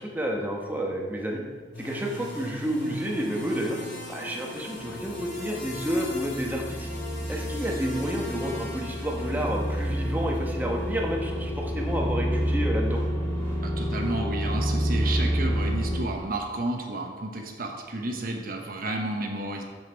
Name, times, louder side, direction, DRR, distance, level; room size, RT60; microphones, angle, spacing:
voice 1, 0.0-1.4 1.8-3.8 4.1-6.9 7.3-13.0, equal, 10° right, -1 dB, 1.1 m, -30 dB
sound 1, 1.7-14.3, left 1 dB, 70° left, 2.6 m, -41 dB
sound 2, 4.8-16.0, equal, 5° left, 2.7 m, -29 dB
voice 2, 13.6-19.6, right 2 dB, 50° right, 2 dB, 1.0 m, -31 dB
7.3 x 6.7 x 4.5 m, 1.5 s
head